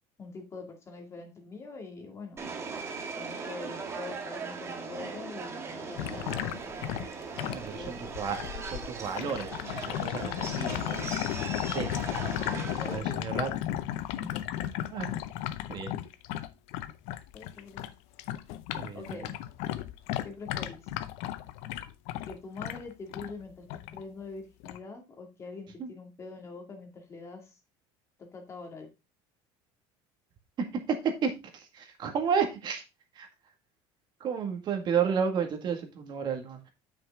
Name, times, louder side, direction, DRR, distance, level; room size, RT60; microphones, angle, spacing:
voice 1, 0.2-2.4 3.1-6.7 7.5-8.0 12.8-13.3 17.3-17.8 18.9-19.4 20.2-20.9 22.3-23.7 23.9-27.6 28.2-28.9, left 3 dB, 25° left, 2.2 m, -44 dB
Subway metro underground, 2.4-13.0, right 4 dB, 25° right, 1.4 m, -39 dB
sound 1, 6.0-17.9 18.2-23.3 23.7-24.0 24.6-24.8, left 12 dB, 70° left, 0.7 m, -35 dB
voice 2, 7.5-8.4 8.7-11.1 11.7-11.9 12.9-13.5 14.1-14.4 14.9-15.1 15.7-15.9 18.7-19.0 25.8-25.9 31.0-32.8 33.2-33.3 34.2-36.7, right 7 dB, 40° right, 1.9 m, -32 dB
7.8 x 6.2 x 3.6 m
cardioid pair, 140°, 12 cm